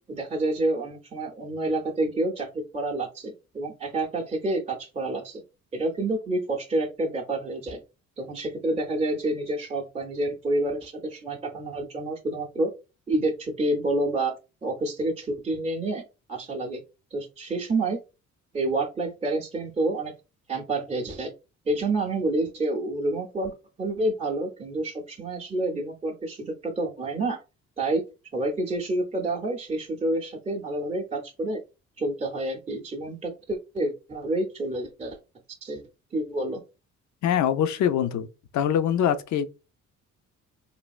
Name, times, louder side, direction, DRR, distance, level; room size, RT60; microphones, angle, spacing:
voice 1, 0.1-5.4 5.7-7.8 8.2-12.7 13.1-14.4 14.6-16.8 17.1-18.0 18.5-20.1 20.5-21.3 21.7-27.4 27.8-28.0 28.3-31.6 32.0-35.2 35.6-35.8 36.1-36.6, right 2 dB, 20° right, 0.6 m, -28 dB
voice 2, 37.2-38.3 38.5-39.5, left 9 dB, 70° left, 0.5 m, -23 dB
3.3 x 2.4 x 2.3 m
cardioid pair, 90°, 30 cm